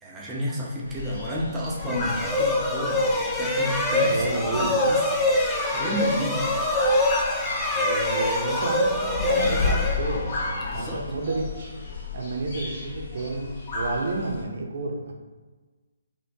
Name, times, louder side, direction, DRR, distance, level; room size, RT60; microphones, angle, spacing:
voice 1, 0.0-3.1 3.4-4.2 4.5-5.3 5.7-6.4 10.6-11.0, equal, 10° right, -5 dB, 0.8 m, -31 dB
sound 1, 0.8-14.4, left 4 dB, 45° left, 1.4 m, -34 dB
Bird, 1.6-10.8, left 2 dB, 80° left, 0.7 m, -37 dB
sound 2, 1.8-10.6, left 1 dB, 10° left, 0.4 m, -25 dB
voice 2, 1.9-2.2 4.1-4.7 7.7-11.7 12.1-13.5 13.7-15.1, right 3 dB, 60° right, 1 dB, 0.7 m, -31 dB
4.3 x 2.8 x 2.9 m, 1.3 s
hypercardioid pair, 150°, 0 cm